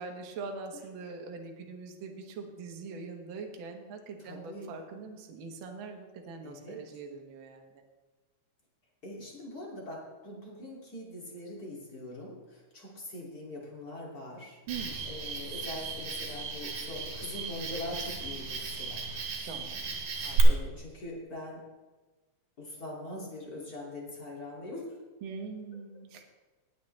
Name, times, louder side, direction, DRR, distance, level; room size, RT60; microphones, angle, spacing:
voice 1, 0.0-7.8 14.7-15.0 19.4-20.4 25.2-26.2, right 4 dB, 55° right, 3 dB, 1.6 m, -42 dB
voice 2, 4.2-4.8 6.4-6.8 9.0-14.6 15.0-19.1 20.4-21.6 22.6-24.9, left 1 dB, 30° left, -4 dB, 2.8 m, -42 dB
Cricket, 14.7-20.4, right 6 dB, 70° right, 2.9 m, -36 dB
19.5 x 7.6 x 3.3 m, 1.2 s
omnidirectional pair, 3.4 m